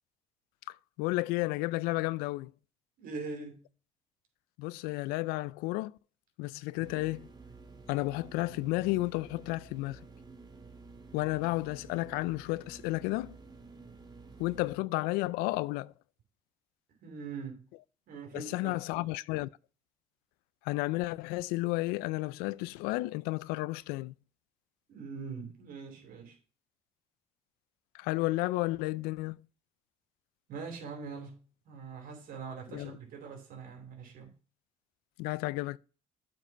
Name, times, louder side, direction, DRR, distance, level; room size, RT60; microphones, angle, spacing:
voice 1, 0.7-2.5 4.6-5.9 6.4-7.3 7.9-10.0 11.1-13.4 14.4-15.9 18.3-19.5 20.7-24.1 27.9-29.4 32.7-32.9 35.2-35.8, left 20 dB, 85° left, 0.4 m, -32 dB
voice 2, 3.0-3.6 17.0-17.7 18.1-19.0 24.9-26.4 30.5-31.4 31.6-34.3, right 5 dB, 70° right, 3.1 m, -42 dB
sound 1, 6.8-14.8, right 4 dB, 25° right, 1.9 m, -51 dB
8.0 x 4.8 x 5.9 m
supercardioid pair, 70°, 15 cm